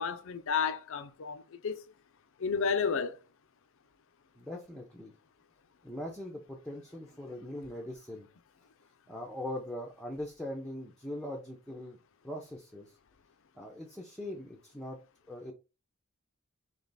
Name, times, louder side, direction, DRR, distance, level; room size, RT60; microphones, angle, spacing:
voice 1, 0.0-1.8 2.4-3.2, left 6 dB, 65° left, 0.5 m, -31 dB
voice 2, 4.4-5.1 5.8-8.3 9.1-12.0 12.2-12.9 13.6-15.0 15.3-15.5, left 1 dB, ahead, 0.6 m, -41 dB
3.3 x 2.9 x 4.0 m
head